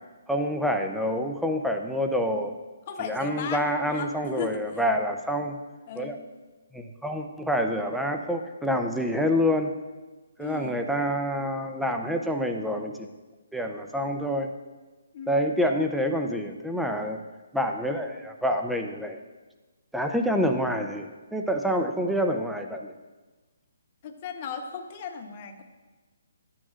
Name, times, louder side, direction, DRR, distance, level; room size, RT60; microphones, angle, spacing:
voice 1, 0.3-2.5 3.0-5.6 6.0-6.2 6.7-9.8 10.4-13.1 13.5-14.5 15.3-17.2 17.5-19.2 19.9-22.9, equal, ahead, 4 dB, 0.5 m, -27 dB
voice 2, 2.9-4.8 5.9-6.2 10.4-10.9 15.1-15.6 24.0-25.6, left 7 dB, 35° left, 6 dB, 0.9 m, -36 dB
12.0 x 8.8 x 2.5 m, 1.2 s
hypercardioid pair, 155°, 0 cm